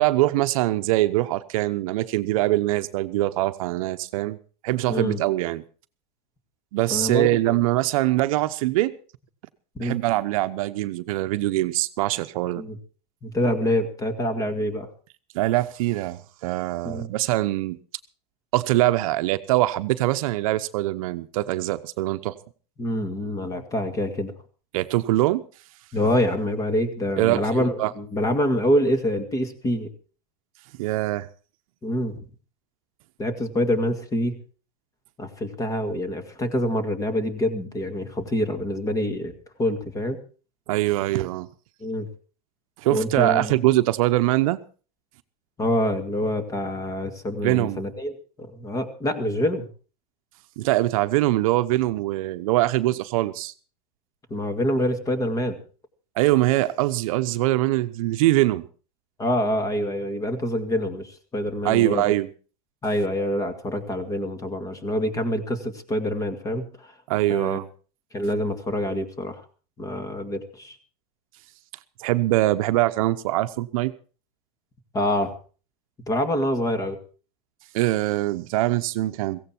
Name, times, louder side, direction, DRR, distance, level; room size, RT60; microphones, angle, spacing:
voice 1, 0.0-4.4 4.6-5.6 6.7-8.9 9.8-12.6 15.3-17.8 18.5-22.4 24.7-25.4 27.2-27.9 30.8-31.3 40.7-41.5 42.8-44.6 47.4-47.8 50.6-53.5 56.2-58.7 61.6-62.3 67.1-67.7 72.0-73.9 77.7-79.4, right 17 dB, 65° right, 11 dB, 1.0 m, -23 dB
voice 2, 4.9-5.2 6.9-7.6 9.8-10.0 12.6-12.8 13.2-14.9 16.8-17.1 22.8-24.3 25.9-29.9 31.8-32.3 33.2-34.4 35.2-39.3 39.6-40.2 41.8-42.1 42.9-43.5 45.6-49.7 54.3-55.6 59.2-62.2 62.8-66.9 67.3-67.6 68.1-69.4 69.8-70.8 74.9-75.4 76.1-77.0, equal, 20° left, 9 dB, 2.2 m, -26 dB
16.0 x 16.0 x 4.5 m, 0.39 s
supercardioid pair, 135°, 19 cm